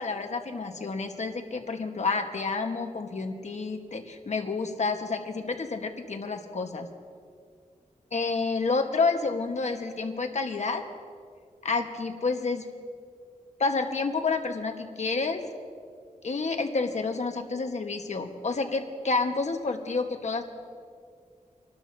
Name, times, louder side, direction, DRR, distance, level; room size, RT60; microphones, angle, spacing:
voice 1, 0.0-6.9 8.1-10.8 11.6-12.6 13.6-15.4 16.2-20.4, left 4 dB, 55° left, 4 dB, 1.3 m, -29 dB
29.5 x 12.0 x 2.7 m, 2.2 s
wide cardioid pair, 75°, 14 cm